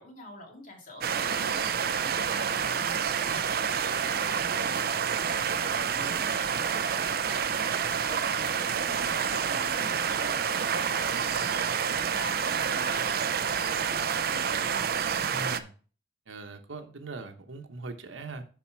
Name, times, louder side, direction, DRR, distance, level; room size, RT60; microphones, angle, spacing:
voice 1, 0.0-14.8, left 1 dB, 45° left, 0 dB, 2.4 m, -46 dB
sound 1, 1.0-15.6, right 7 dB, 50° right, 0.5 m, -28 dB
voice 2, 15.3-15.7 16.3-18.5, right 3 dB, 85° right, 7 dB, 1.1 m, -41 dB
7.3 x 5.5 x 4.6 m, 0.39 s
head